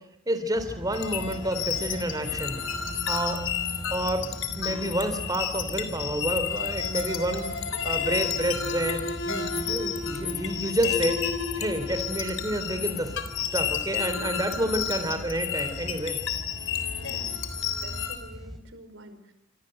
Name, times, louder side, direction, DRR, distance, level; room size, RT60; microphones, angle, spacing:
voice 1, 0.3-2.6 3.1-3.5 3.9-7.5 7.8-11.2 11.6-13.1 13.5-16.2, right 1 dB, 20° right, 9 dB, 3.6 m, -29 dB
sound 1, 0.6-18.6, equal, ahead, 3.8 m, -41 dB
sound 2, 0.9-18.2, left 7 dB, 65° left, 3.6 m, -31 dB
voice 2, 17.0-17.4 17.8-19.3, right 1 dB, 65° right, 9 dB, 4.9 m, -47 dB
27.5 x 27.0 x 8.0 m, 0.83 s
head